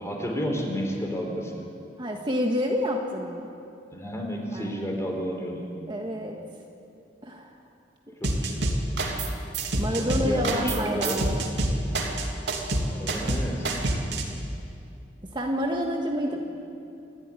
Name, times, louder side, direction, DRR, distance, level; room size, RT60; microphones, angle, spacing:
voice 1, 0.0-1.6 3.9-5.7 8.1-8.6 10.0-11.2 12.9-13.7 16.2-16.4, equal, 15° left, 1 dB, 4.0 m, -31 dB
voice 2, 2.0-3.5 4.5-4.7 5.9-6.4 7.2-7.5 9.7-11.4 15.3-16.4, equal, 25° right, 1 dB, 1.5 m, -28 dB
sound 1, 8.2-9.3 9.5-14.2, right 2 dB, 75° right, 2.9 m, -26 dB
27.5 x 13.0 x 9.9 m, 2.6 s
head